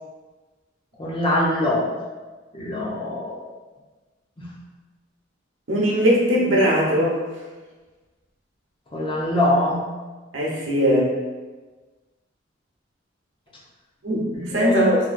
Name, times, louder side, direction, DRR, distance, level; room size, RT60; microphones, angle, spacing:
voice 1, 1.0-1.9 2.5-3.5 4.4-4.5 8.9-9.8 14.3-15.0, left 1 dB, 25° left, -5 dB, 0.5 m, -23 dB
voice 2, 5.7-7.2 10.3-11.1 14.0-15.0, equal, 80° right, -4 dB, 0.8 m, -20 dB
2.7 x 2.6 x 2.5 m, 1.3 s
head